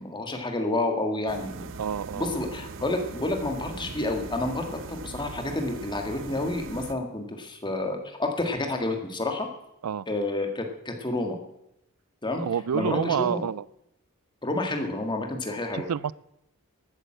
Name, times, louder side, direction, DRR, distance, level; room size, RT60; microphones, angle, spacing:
voice 1, 0.0-1.7 2.1-9.5 10.1-11.4 12.2-12.4 12.7-13.4 14.4-15.9, left 2 dB, 20° left, 4 dB, 1.8 m, -29 dB
sound 1, 1.3-6.9, right 4 dB, 60° right, 0.7 m, -40 dB
voice 2, 1.8-2.4 9.8-10.1 12.3-13.6 15.7-16.1, right 8 dB, 90° right, 22 dB, 0.4 m, -28 dB
13.5 x 9.2 x 7.7 m, 0.84 s
head